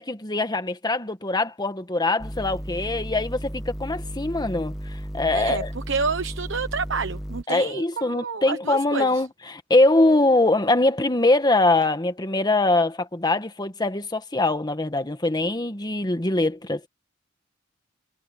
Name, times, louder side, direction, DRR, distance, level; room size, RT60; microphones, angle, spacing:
voice 1, 0.0-5.7 7.5-16.9, left 2 dB, 20° left, 1.4 m, -23 dB
sound 1, 2.2-7.4, equal, ahead, 1.4 m, -34 dB
voice 2, 5.3-9.2, right 5 dB, 70° right, 1.1 m, -29 dB
head